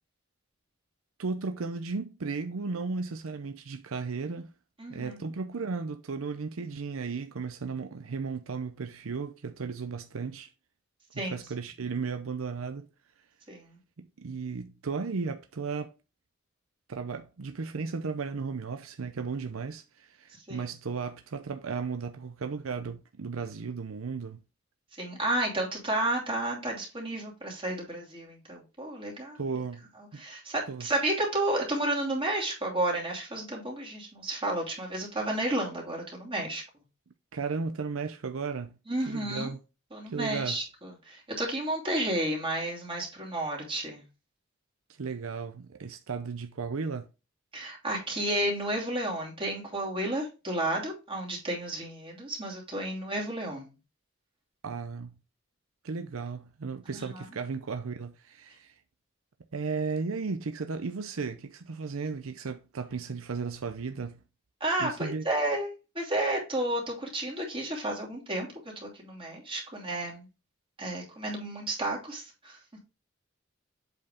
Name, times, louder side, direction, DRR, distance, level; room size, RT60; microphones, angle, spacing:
voice 1, 1.2-4.5 4.9-10.5 11.1-12.9 14.0-15.9 16.9-24.4 29.4-30.2 30.7-30.9 37.3-38.8 39.1-39.6 40.1-40.6 45.0-47.1 54.6-55.2 55.8-58.7 59.5-64.2 64.8-65.2, right 4 dB, 85° right, 0.6 m, -35 dB
voice 2, 4.8-5.2 11.2-11.4 13.5-13.8 20.5-20.7 25.0-29.4 30.1-36.6 38.9-39.5 39.9-44.0 47.5-53.7 56.9-57.2 64.6-68.5 68.8-70.3 70.8-72.6, right 1 dB, 25° right, 2.7 m, -32 dB
7.9 x 4.7 x 3.5 m
head